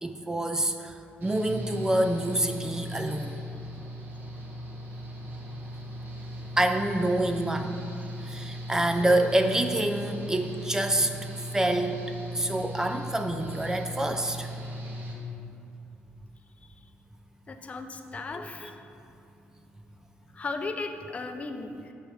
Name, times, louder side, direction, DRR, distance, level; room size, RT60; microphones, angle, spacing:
voice 1, 0.0-3.3 6.6-7.7 8.2-11.1 11.5-12.0 12.3-14.5 18.3-18.7, right 1 dB, 15° right, 6 dB, 0.4 m, -27 dB
Engine / Mechanical fan, 1.2-15.1, equal, 50° right, 1.3 m, -38 dB
voice 2, 9.0-9.4 17.5-18.7 20.3-21.8, left 3 dB, 35° left, 6 dB, 0.6 m, -36 dB
7.0 x 4.6 x 6.5 m, 2.6 s
cardioid pair, 105°, 4 cm